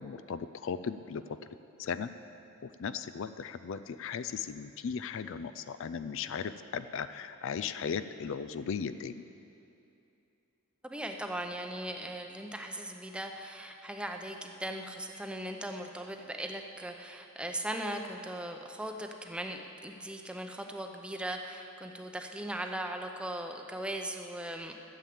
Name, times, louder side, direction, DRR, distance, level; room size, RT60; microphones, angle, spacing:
voice 1, 0.0-1.4 1.8-2.1 2.6-9.3, left 6 dB, 60° left, 12 dB, 0.4 m, -37 dB
voice 2, 10.8-24.7, right 1 dB, 5° right, 4 dB, 0.7 m, -39 dB
12.5 x 7.3 x 8.5 m, 2.8 s
head